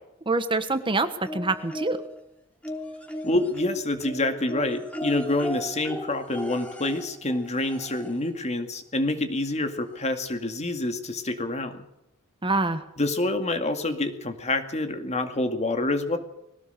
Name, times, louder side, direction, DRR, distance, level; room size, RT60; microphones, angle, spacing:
voice 1, 0.3-2.0 12.4-12.8, right 3 dB, 25° right, 10 dB, 1.3 m, -25 dB
sound 1, 1.2-2.2 2.6-8.3 9.5-9.6 10.0-10.1, equal, 5° left, 3.4 m, -37 dB
voice 2, 3.2-11.8 13.0-16.2, left 2 dB, 35° left, 7 dB, 2.3 m, -27 dB
21.5 x 18.0 x 6.7 m, 0.83 s
head